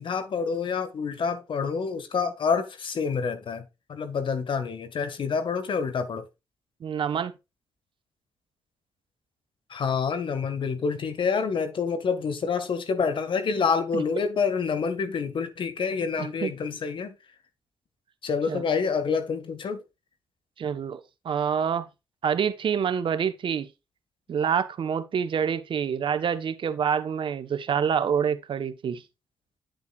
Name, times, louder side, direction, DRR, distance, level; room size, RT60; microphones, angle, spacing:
voice 1, 0.0-3.6 3.9-6.2 9.7-17.1 18.2-19.8, left 5 dB, 65° left, 1.7 m, -27 dB
voice 2, 6.8-7.3 13.9-14.0 16.2-16.5 18.5-18.6 20.6-21.8 22.2-23.7 24.3-29.0, right 7 dB, 65° right, 1.1 m, -27 dB
8.8 x 8.0 x 2.4 m
supercardioid pair, 50°, 9 cm